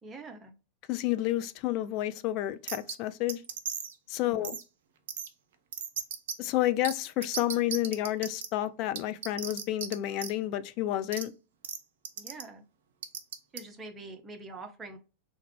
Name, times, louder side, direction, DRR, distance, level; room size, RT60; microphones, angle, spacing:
voice 1, 0.0-0.5 4.2-4.5 12.2-12.6 13.5-15.0, right 3 dB, 15° right, 0.7 m, -45 dB
voice 2, 0.9-3.4 4.1-4.6 6.4-11.3, left 14 dB, 40° left, 0.3 m, -30 dB
sound 1, 2.7-2.9 3.3-3.9 4.4-4.6 5.1-5.3 5.7-6.3 6.8-6.9 7.2-8.5 9.0-9.9 10.2-10.3 11.1-11.2 11.6-11.8 12.1-12.4 13.0-13.6, right 8 dB, 55° right, 0.5 m, -35 dB
3.5 x 2.2 x 3.1 m
figure-of-eight pair, 90°, 0 cm